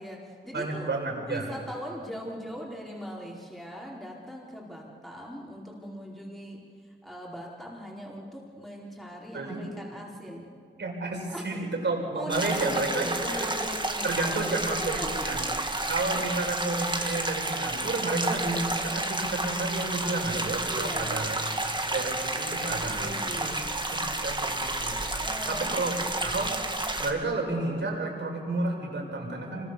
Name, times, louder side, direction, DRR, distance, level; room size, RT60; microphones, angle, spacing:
voice 1, 0.0-0.9 1.2-6.6 7.0-10.5 11.3-11.5 12.1-15.3 16.1-16.3 20.6-21.3 22.8-23.5 25.2-25.9, equal, ahead, -3 dB, 4.9 m, -40 dB
voice 2, 0.5-1.5 9.3-9.7 10.8-13.5 14.0-15.4 15.9-21.4 21.9-23.6 23.9-25.0 25.5-25.9 26.2-26.5 27.0-29.7, right 2 dB, 65° right, 0 dB, 6.0 m, -31 dB
sound 1, 12.3-27.1, right 2 dB, 25° right, 2.6 m, -31 dB
25.5 x 21.5 x 7.2 m, 2.3 s
cardioid pair, 55°, 20 cm